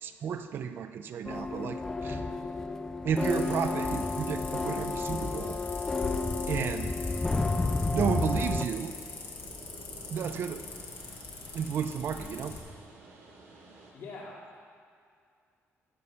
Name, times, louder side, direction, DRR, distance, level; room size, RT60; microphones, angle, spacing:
voice 1, 0.0-2.2 3.0-5.6 6.5-6.9 7.9-9.0 10.1-10.7 11.5-12.6, right 7 dB, 50° right, 9 dB, 0.5 m, -32 dB
sound 1, 1.2-8.6, left 3 dB, 10° left, 0.4 m, -31 dB
sound 2, 3.2-12.6, left 4 dB, 45° left, 1.6 m, -43 dB
sound 3, 4.7-13.9, right 2 dB, 90° right, 2.6 m, -54 dB
voice 2, 13.9-14.6, left 3 dB, 60° left, -4 dB, 2.5 m, -44 dB
14.0 x 5.3 x 6.8 m, 2.3 s
cardioid pair, 175°, 5 cm